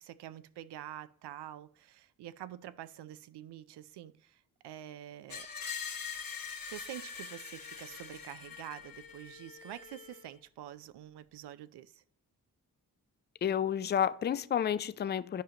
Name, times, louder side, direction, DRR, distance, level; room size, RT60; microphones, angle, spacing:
voice 1, 0.0-5.5 6.7-12.0, right 12 dB, 80° right, 0.5 m, -47 dB
Screech, 5.3-10.3, left 6 dB, 60° left, 1.1 m, -43 dB
voice 2, 13.4-15.4, left 9 dB, 30° left, 0.3 m, -30 dB
10.0 x 5.0 x 2.9 m
cardioid pair, 55°, 40 cm